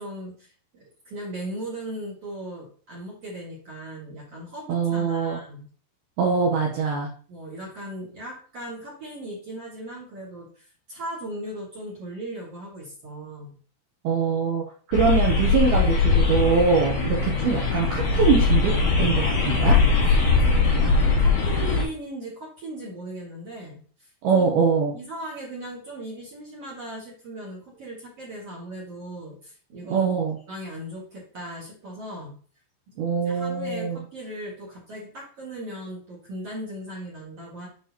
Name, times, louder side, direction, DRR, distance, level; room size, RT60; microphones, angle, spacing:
voice 1, 0.0-5.7 6.2-6.3 7.3-13.6 20.4-24.5 24.9-30.1 30.5-32.4 32.9-37.7, right 1 dB, 55° right, -3 dB, 1.7 m, -38 dB
voice 2, 4.7-5.4 6.2-7.1 14.0-19.8 24.2-24.9 29.9-30.4 33.0-34.0, right 5 dB, 75° right, -1 dB, 2.3 m, -23 dB
sound 1, 14.9-21.8, left 4 dB, 65° left, 1.9 m, -21 dB
8.7 x 5.3 x 2.9 m, 0.43 s
omnidirectional pair, 5.8 m